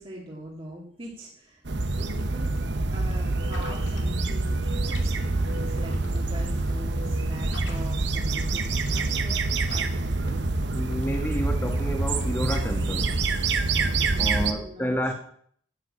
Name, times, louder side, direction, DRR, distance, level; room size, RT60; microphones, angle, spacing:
voice 1, 0.0-1.6 2.0-2.6 2.9-10.4 13.8-15.1, equal, 30° right, 1.9 m, -42 dB
sound 1, 1.6-14.5, right 3 dB, 65° right, 1.0 m, -26 dB
sound 2, 1.9-13.8, left 1 dB, 75° left, 2.7 m, -46 dB
voice 2, 10.7-13.2 14.2-15.1, equal, 10° left, 1.5 m, -30 dB
10.0 x 7.6 x 8.6 m
head